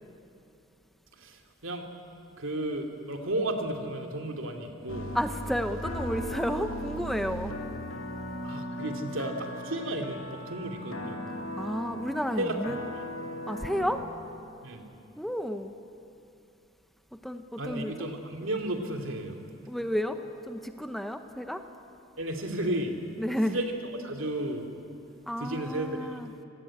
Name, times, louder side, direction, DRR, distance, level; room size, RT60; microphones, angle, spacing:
voice 1, 1.1-1.9 2.4-5.1 8.4-11.2 12.4-13.0 13.8-13.9 14.6-14.8 17.6-19.4 22.2-23.0 23.5-23.7 24.0-24.7 25.4-26.5, right 1 dB, 70° right, 4 dB, 2.6 m, -33 dB
sound 1, 4.9-14.1, equal, 80° left, 2.5 m, -38 dB
voice 2, 5.1-7.5 11.6-12.8 13.5-14.0 15.2-15.7 17.1-18.1 19.7-20.2 20.4-21.6 23.2-23.6 25.3-26.3, equal, ahead, 7 dB, 0.8 m, -31 dB
25.5 x 18.5 x 8.8 m, 2.7 s
head